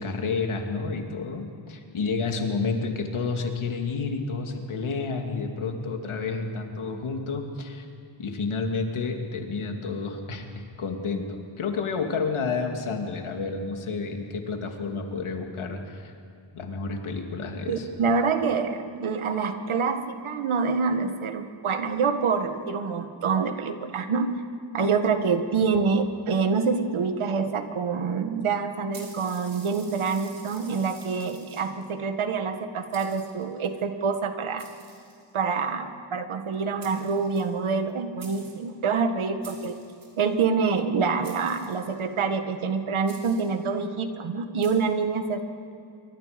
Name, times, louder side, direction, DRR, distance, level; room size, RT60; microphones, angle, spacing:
voice 1, 0.0-7.9 8.2-16.1 16.5-17.9, left 4 dB, 85° left, 3 dB, 2.7 m, -30 dB
voice 2, 17.7-24.3 24.7-34.7 35.3-39.7 40.2-45.4, right 5 dB, 90° right, 7 dB, 1.8 m, -26 dB
sound 1, 28.9-31.9 32.5-32.6 32.9-33.7 34.6-35.5 36.5-36.6 36.8-37.9 38.2-38.7 39.4-40.3 41.2-42.1 43.1-43.6 44.6-44.7, right 3 dB, 45° right, 4.6 m, -49 dB
27.5 x 24.0 x 5.3 m, 2.5 s
wide cardioid pair, 165°, 48 cm